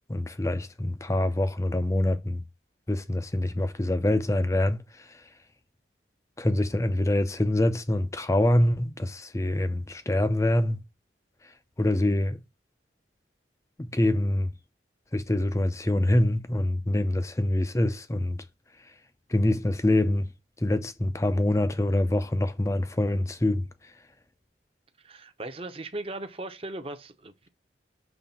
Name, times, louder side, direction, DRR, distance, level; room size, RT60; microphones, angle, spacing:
voice 1, 0.1-2.4 2.9-5.2 6.4-10.8 11.8-12.4 13.8-14.5 15.1-18.4 19.3-20.3 20.6-23.7, left 1 dB, 15° left, 0.5 m, -25 dB
voice 2, 25.0-27.5, right 2 dB, 30° right, 0.8 m, -38 dB
5.8 x 3.3 x 5.3 m
head